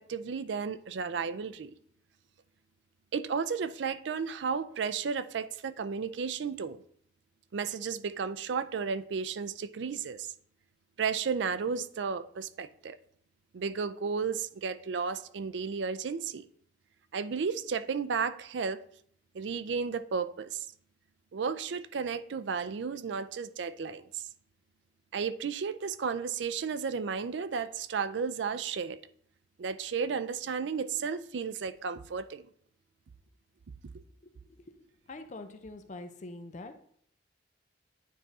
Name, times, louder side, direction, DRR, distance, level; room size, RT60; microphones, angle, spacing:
voice 1, 0.0-1.7 3.1-6.8 7.5-10.3 11.0-13.0 13.5-16.5 17.1-18.8 19.3-20.7 21.3-24.2 25.1-29.0 29.6-32.5, right 5 dB, 70° right, 0.4 m, -33 dB
voice 2, 35.1-36.8, left 2 dB, 40° left, 0.5 m, -44 dB
9.3 x 3.6 x 4.1 m
head